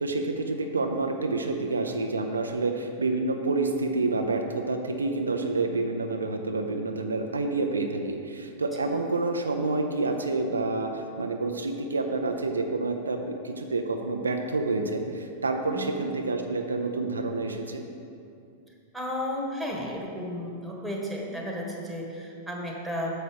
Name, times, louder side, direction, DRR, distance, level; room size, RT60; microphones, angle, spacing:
voice 1, 0.0-17.8, right 3 dB, 85° right, 4 dB, 0.5 m, -28 dB
voice 2, 18.9-23.2, left 1 dB, 5° right, -1 dB, 1.4 m, -33 dB
6.7 x 5.5 x 5.0 m, 2.5 s
hypercardioid pair, 100°, 0 cm